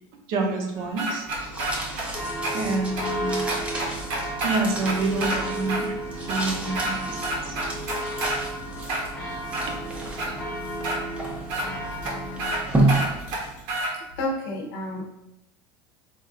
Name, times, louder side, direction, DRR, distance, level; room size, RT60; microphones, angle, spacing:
voice 1, 0.3-1.3 2.5-3.4 4.4-6.0 6.3-7.2 7.5-7.6 9.2-9.3 9.7-9.8, right 3 dB, 50° right, 2 dB, 0.7 m, -27 dB
sound 1, 0.7-12.5, equal, 10° left, 1.0 m, -34 dB
sound 2, 1.0-2.1 2.4-2.5 3.0-3.1 3.5-5.4 5.7-5.8 6.2-6.9 7.2-8.4 8.8-9.7 10.2-10.3 10.8-11.0 11.5-11.7 12.0-12.1 12.4-12.6 12.9-13.9, right 1 dB, 75° right, 1.0 m, -28 dB
sound 3, 1.3-13.8, right 2 dB, 10° right, 0.5 m, -31 dB
voice 2, 14.2-15.0, left 1 dB, 75° left, -1 dB, 0.7 m, -29 dB
4.3 x 2.4 x 2.4 m, 0.84 s
supercardioid pair, 150°, 12 cm